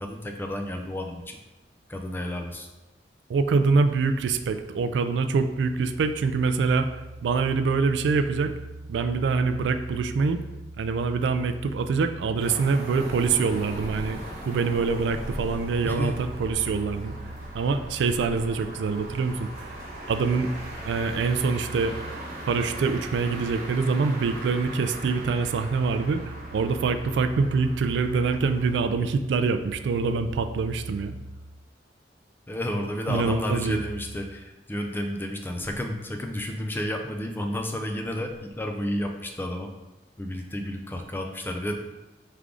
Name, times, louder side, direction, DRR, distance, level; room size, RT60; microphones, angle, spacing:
voice 1, 0.0-1.4 1.9-2.7 15.8-16.2 32.5-39.7 40.2-41.8, left 1 dB, 10° left, 4 dB, 0.4 m, -31 dB
voice 2, 3.3-6.9 7.2-8.5 8.9-10.4 10.8-14.2 14.5-17.1 17.5-19.7 20.1-20.5 20.9-21.9 22.5-31.1 33.1-33.8, right 4 dB, 75° right, 9 dB, 0.3 m, -25 dB
sound 1, 12.4-28.7, right 1 dB, 55° right, 1.0 m, -40 dB
sound 2, 12.9-21.9, equal, 50° left, 1.2 m, -43 dB
3.6 x 3.3 x 3.7 m, 1.0 s
head